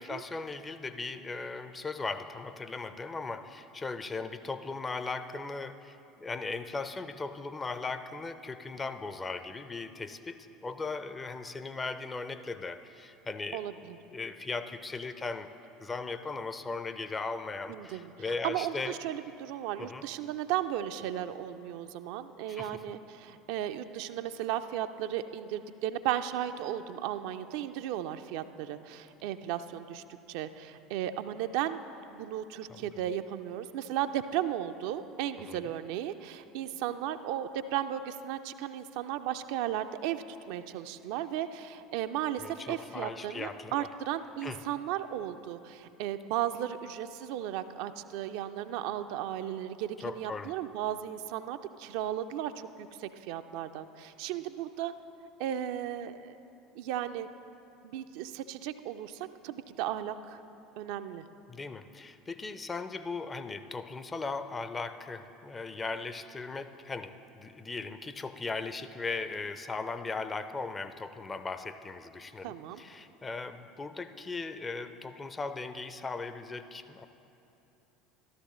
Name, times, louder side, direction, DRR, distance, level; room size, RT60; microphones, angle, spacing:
voice 1, 0.0-13.6 14.1-15.5 15.8-19.0 19.8-20.0 22.5-22.8 32.7-32.8 35.5-35.6 42.4-43.9 44.4-44.6 50.0-50.5 61.5-77.0, left 3 dB, 20° left, 11 dB, 0.5 m, -38 dB
voice 2, 13.5-14.0 17.7-18.1 18.4-31.8 32.1-54.9 55.4-56.4 56.8-57.3 57.8-60.4 60.8-61.2 72.4-72.8, right 11 dB, 60° right, 9 dB, 0.3 m, -35 dB
13.0 x 13.0 x 3.1 m, 2.8 s
figure-of-eight pair, 70°, 0 cm